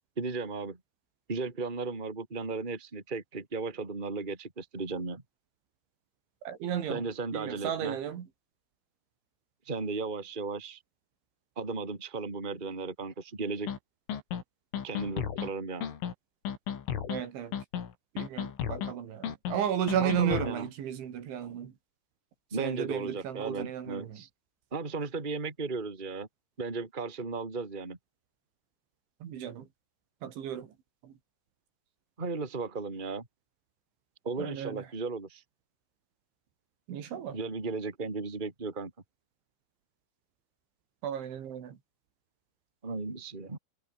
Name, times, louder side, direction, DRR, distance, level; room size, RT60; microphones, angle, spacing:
voice 1, 0.2-0.8 1.3-5.2 6.9-8.0 9.6-10.8 11.6-13.7 14.8-15.9 20.0-20.7 22.5-24.3 24.7-26.3 26.6-28.0 32.2-33.3 34.2-35.4 37.3-38.9 42.8-43.6, right 3 dB, 10° right, 2.7 m, -35 dB
voice 2, 6.5-7.0 7.3-8.3 17.1-17.5 18.2-21.7 22.6-24.2 29.2-29.7 30.2-30.7 31.0-31.1 34.4-34.9 36.9-37.4 41.0-41.8, right 9 dB, 75° right, 5.2 m, -34 dB
sound 1, 13.7-13.8 14.1-14.4 14.7-15.5 15.8-16.1 16.5-17.2 17.5-17.9 18.2-18.9 19.2-19.6 19.9-20.5, left 8 dB, 85° left, 5.9 m, -34 dB
omnidirectional pair, 5.5 m